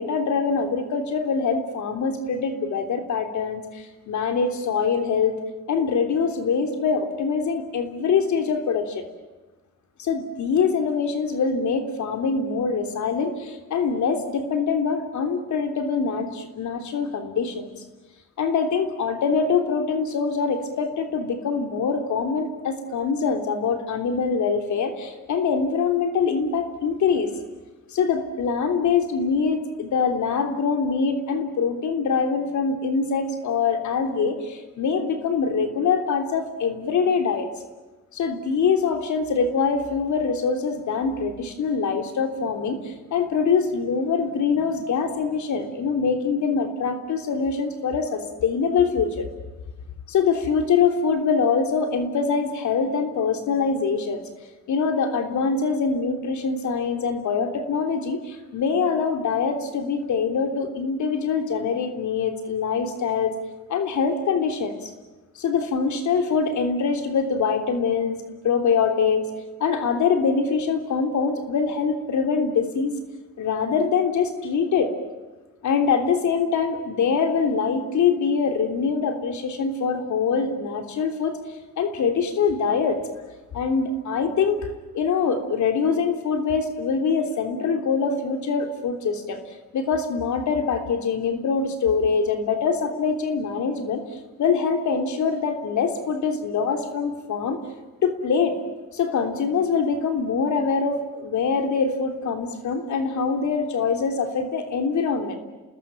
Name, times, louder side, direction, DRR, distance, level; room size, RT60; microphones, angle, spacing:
voice 1, 0.0-5.4 5.7-9.0 10.0-17.7 18.4-27.3 27.9-37.5 38.1-49.2 50.1-54.2 54.7-63.3 63.7-64.8 65.4-68.2 68.4-69.3 69.6-73.0 73.4-74.9 75.6-81.4 81.8-83.0 83.5-84.6 84.9-89.4 89.7-94.0 94.4-97.6 98.0-98.6 98.9-105.4, left 5 dB, 70° left, 6 dB, 3.4 m, -24 dB
28.5 x 20.0 x 9.1 m, 1.2 s
cardioid pair, 90°, 30 cm